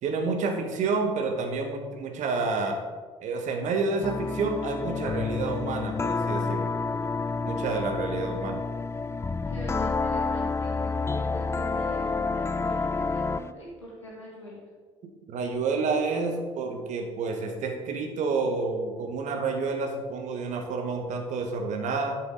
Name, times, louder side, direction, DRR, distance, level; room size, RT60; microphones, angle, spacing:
voice 1, 0.0-2.8 3.2-6.7 7.4-8.6 15.3-22.2, right 4 dB, 55° right, 4 dB, 1.6 m, -29 dB
sound 1, 4.0-13.5, left 4 dB, 20° left, 0.4 m, -29 dB
voice 2, 9.4-14.6, equal, 85° left, -5 dB, 2.8 m, -43 dB
11.0 x 7.7 x 4.1 m, 1.5 s
figure-of-eight pair, 50°, 15 cm